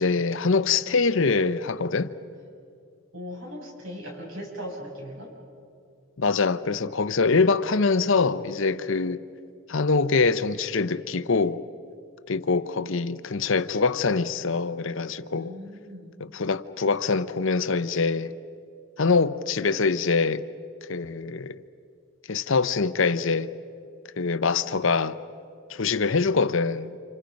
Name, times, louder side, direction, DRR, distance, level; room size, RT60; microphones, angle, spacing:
voice 1, 0.0-2.1 6.2-9.2 9.7-11.6 12.3-15.5 16.2-18.3 19.0-20.4 20.9-21.6 22.3-23.5 24.2-25.2 25.7-27.0, left 4 dB, 60° left, 0.7 m, -24 dB
voice 2, 3.1-5.3 15.3-16.1, equal, 70° right, 6.9 m, -39 dB
30.0 x 28.0 x 5.3 m
head